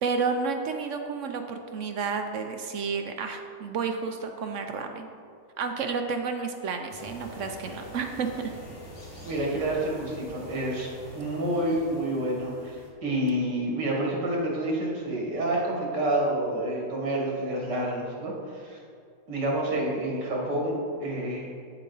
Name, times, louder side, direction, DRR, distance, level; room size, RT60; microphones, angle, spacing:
voice 1, 0.0-5.1 5.6-8.6, right 5 dB, 65° right, 5 dB, 0.8 m, -31 dB
sound 1, 6.9-12.9, equal, 35° left, 1.7 m, -45 dB
voice 2, 9.2-10.9 11.1-18.8 19.3-21.5, right 1 dB, 85° right, -2 dB, 2.3 m, -28 dB
8.7 x 7.4 x 3.9 m, 2.3 s
omnidirectional pair, 1.8 m